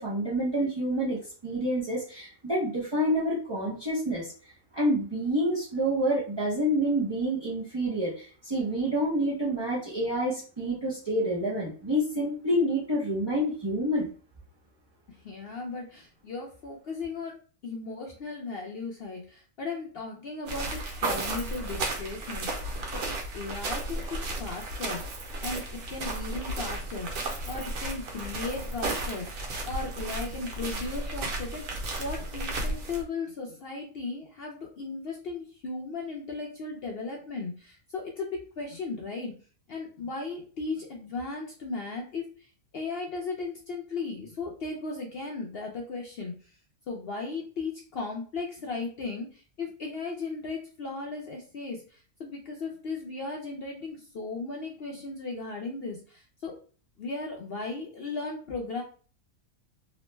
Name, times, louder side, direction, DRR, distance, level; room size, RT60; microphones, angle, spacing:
voice 1, 0.0-4.3 4.7-14.1, equal, 35° right, -8 dB, 0.4 m, -28 dB
voice 2, 15.1-17.3 17.6-22.5 22.9-25.0 25.4-27.1 27.5-29.3 29.6-39.4 39.7-46.3 46.9-56.5 57.0-58.8, left 3 dB, 65° left, 0 dB, 0.6 m, -36 dB
sound 1, 20.5-33.0, right 2 dB, 90° right, 1.3 m, -34 dB
2.9 x 2.0 x 3.1 m, 0.39 s
omnidirectional pair, 1.5 m